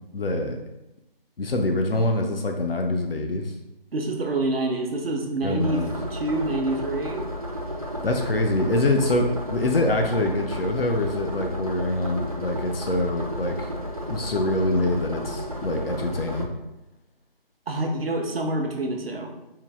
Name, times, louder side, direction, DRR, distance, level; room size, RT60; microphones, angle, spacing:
voice 1, 0.1-0.6 1.4-3.5 5.4-5.9 8.0-13.7 14.1-16.5, left 2 dB, 75° left, 3 dB, 0.6 m, -25 dB
voice 2, 3.9-5.8 6.1-7.3 17.7-19.3, right 2 dB, 80° right, 3 dB, 0.8 m, -27 dB
sound 1, 5.6-16.5, equal, 40° right, 0.4 m, -33 dB
4.5 x 2.0 x 3.4 m, 0.95 s
figure-of-eight pair, 175°, 29 cm